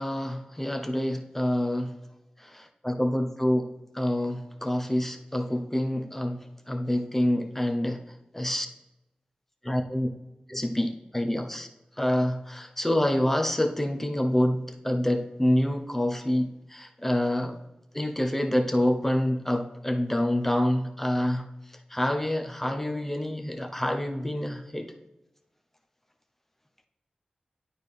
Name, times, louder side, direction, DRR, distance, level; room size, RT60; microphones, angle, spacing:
voice 1, 0.0-2.0 2.4-8.0 8.3-8.7 9.6-10.1 10.5-11.7 12.0-17.6 17.9-21.4 21.9-24.9, left 1 dB, 10° left, 4 dB, 0.8 m, -27 dB
12.0 x 4.4 x 3.4 m, 0.98 s
wide cardioid pair, 95°, 3 cm